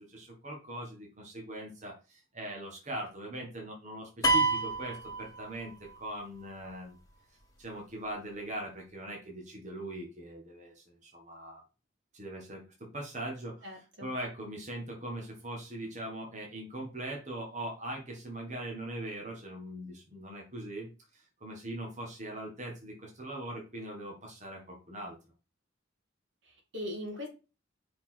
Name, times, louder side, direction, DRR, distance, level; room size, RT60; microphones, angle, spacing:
voice 1, 0.0-7.0 7.6-11.6 12.1-25.1, right 1 dB, 35° right, 0 dB, 1.7 m, -41 dB
sound 1, 4.2-5.9, right 2 dB, 20° left, 2.0 m, -28 dB
voice 2, 13.6-14.1 26.5-27.3, left 1 dB, 70° right, 1 dB, 2.5 m, -40 dB
5.5 x 4.4 x 6.1 m, 0.31 s
head